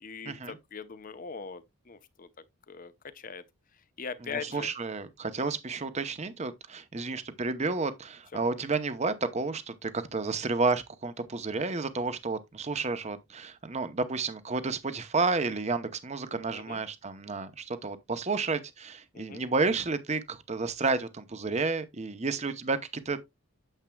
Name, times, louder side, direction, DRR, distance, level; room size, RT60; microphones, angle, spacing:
voice 1, 0.0-2.3 2.7-3.4 4.0-4.7 5.4-5.5 7.0-7.2 16.5-16.8 19.1-19.4, left 5 dB, 40° left, 0.7 m, -41 dB
voice 2, 4.3-23.3, right 3 dB, 30° right, 0.7 m, -31 dB
8.9 x 7.3 x 2.2 m
head